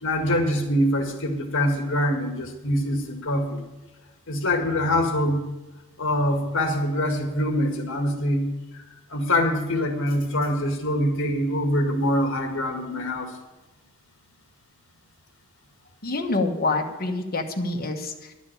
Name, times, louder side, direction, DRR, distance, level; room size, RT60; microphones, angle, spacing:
voice 1, 0.0-3.6 4.3-5.4 6.0-8.5 9.1-13.3, left 1 dB, 60° left, 4 dB, 1.8 m, -24 dB
voice 2, 16.0-18.3, left 2 dB, 45° left, 3 dB, 1.2 m, -26 dB
11.5 x 6.2 x 8.7 m, 1.1 s
head